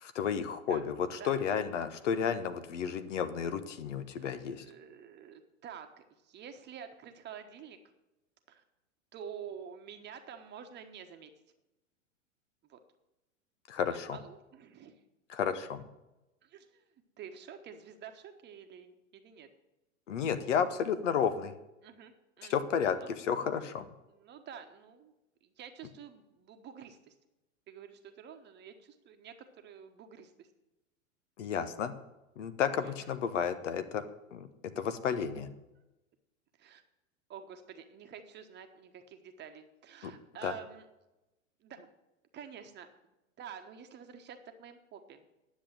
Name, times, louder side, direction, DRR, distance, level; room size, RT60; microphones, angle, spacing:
voice 1, 0.0-4.6 13.7-14.2 15.3-15.8 20.1-21.5 22.5-23.8 31.4-31.9 32.4-34.0 34.3-34.5 34.8-35.5 40.0-40.1 40.4-40.5, left 7 dB, 60° left, 10 dB, 1.2 m, -32 dB
voice 2, 4.2-7.8 8.5-8.6 9.1-11.3 12.7-12.8 13.9-14.9 16.4-16.8 17.2-19.5 21.8-22.6 23.0-23.1 24.1-25.1 25.4-27.1 27.7-30.5 32.8-33.1 36.6-36.8 37.3-40.8 41.6-41.9 42.3-42.9 43.4-45.2, right 8 dB, 25° right, 6 dB, 1.2 m, -49 dB
10.5 x 7.3 x 8.8 m, 0.99 s
figure-of-eight pair, 100°, 40 cm